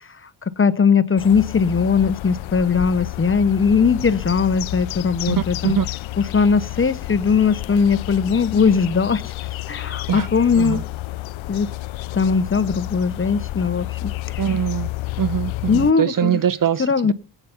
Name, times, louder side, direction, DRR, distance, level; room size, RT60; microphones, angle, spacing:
voice 1, 0.0-5.8 6.2-9.3 9.7-10.8 11.5-11.7 12.1-14.4 15.7-16.4 16.8-17.1, left 5 dB, 25° left, 0.8 m, -19 dB
sound 1, 1.2-15.9, left 19 dB, 80° left, 0.5 m, -30 dB
voice 2, 14.4-14.9 15.2-17.1, right 9 dB, 45° right, 0.6 m, -22 dB
18.0 x 8.1 x 5.6 m
cardioid pair, 70°, 46 cm